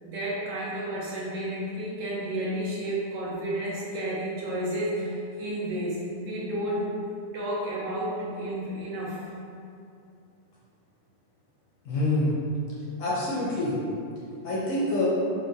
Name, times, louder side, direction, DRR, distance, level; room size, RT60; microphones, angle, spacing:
voice 1, 0.0-6.9 7.3-9.2, right 1 dB, 85° right, -6 dB, 1.5 m, -31 dB
voice 2, 11.8-12.3 13.0-13.8 14.4-15.1, left 2 dB, 65° left, -7 dB, 0.7 m, -26 dB
4.4 x 2.2 x 2.6 m, 2.5 s
omnidirectional pair, 2.0 m